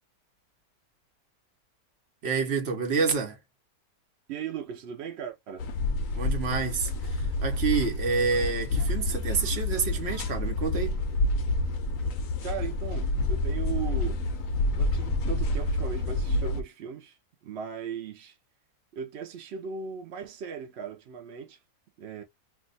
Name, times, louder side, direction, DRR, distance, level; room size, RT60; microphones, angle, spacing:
voice 1, 2.2-3.4 6.1-11.0, right 5 dB, 50° right, 0.9 m, -28 dB
voice 2, 4.3-5.7 12.4-14.2 14.7-17.2 17.4-18.4 18.9-21.6 22.0-22.2, right 7 dB, 75° right, 0.6 m, -38 dB
sound 1, 5.6-16.6, left 2 dB, 70° left, 0.8 m, -28 dB
2.7 x 2.2 x 3.8 m
omnidirectional pair, 1.8 m